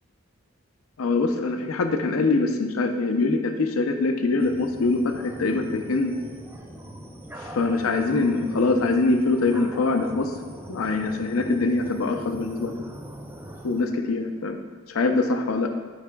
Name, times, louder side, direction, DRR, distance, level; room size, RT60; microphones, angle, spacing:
voice 1, 1.0-6.1 7.4-10.3 10.7-12.8 13.6-14.6 14.9-15.7, left 3 dB, 90° left, 6 dB, 0.5 m, -23 dB
sound 1, 4.4-13.9, right 1 dB, 10° right, 0.4 m, -41 dB
9.2 x 4.8 x 2.2 m, 1.5 s
head